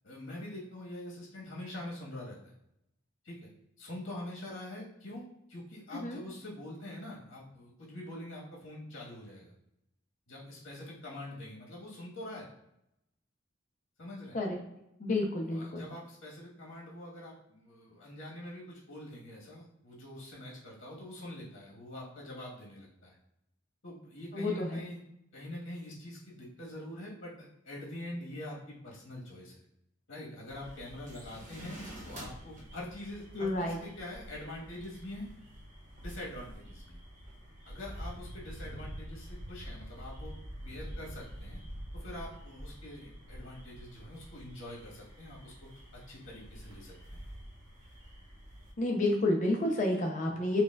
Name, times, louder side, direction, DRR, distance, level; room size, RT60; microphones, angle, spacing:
voice 1, 0.0-2.5 3.2-3.5 3.8-5.2 5.5-9.5 10.3-12.5 14.0-14.4 15.4-23.1 23.8-25.0 25.3-27.3 27.6-28.6 28.8-29.6 30.1-35.2 36.0-37.0 37.6-41.6 41.9-45.5 46.1-46.9, left 1 dB, 65° left, -4 dB, 1.3 m, -44 dB
voice 2, 15.0-15.8 24.3-24.8 33.3-33.8 48.8-50.6, left 2 dB, 40° left, 0 dB, 0.5 m, -30 dB
sound 1, 30.5-48.7, equal, 40° right, 0.9 m, -47 dB
4.7 x 2.2 x 2.3 m, 0.81 s
head